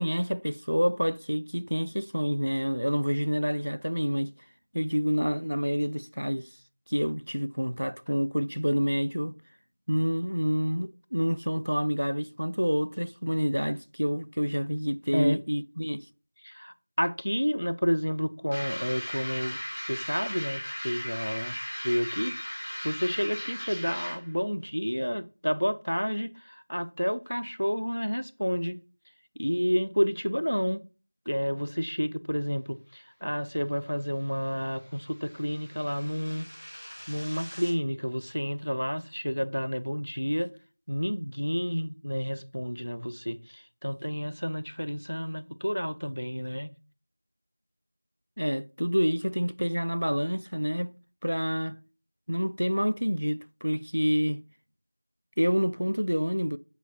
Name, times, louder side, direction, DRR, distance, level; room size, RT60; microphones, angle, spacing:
voice 1, 0.0-4.3 4.7-6.5 6.9-9.4 9.9-16.1 48.4-50.9 51.2-51.8 52.3-54.4 55.4-56.6, equal, 60° right, 0.3 m, -28 dB
voice 2, 16.4-19.6 19.8-21.6 21.8-28.8 29.4-30.8 31.3-36.5 37.1-40.5 40.9-46.7, equal, 60° left, 0.5 m, -30 dB
sound 1, 18.5-24.3, equal, 10° left, 0.8 m, -36 dB
sound 2, 33.3-37.7, equal, 35° left, 1.3 m, -49 dB
7.9 x 4.6 x 2.8 m
figure-of-eight pair, 180°, 0 cm